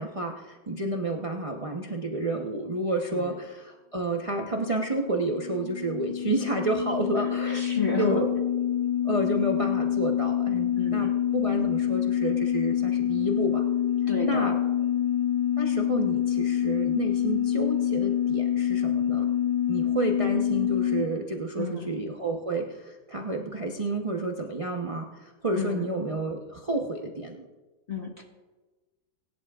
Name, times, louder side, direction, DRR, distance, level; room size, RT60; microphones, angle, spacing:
voice 1, 0.0-7.7 8.0-8.3 9.0-13.6 14.2-14.6 15.6-19.3 19.7-27.5, right 2 dB, 45° right, 0 dB, 0.4 m, -30 dB
sound 1, 4.8-21.0, left 10 dB, 5° left, 4.2 m, -26 dB
voice 2, 7.5-8.2 10.7-11.1 14.1-14.5 21.6-21.9 25.5-25.9 27.9-28.2, left 5 dB, 35° left, 0 dB, 1.4 m, -31 dB
23.0 x 11.0 x 2.4 m, 1.2 s
omnidirectional pair, 2.1 m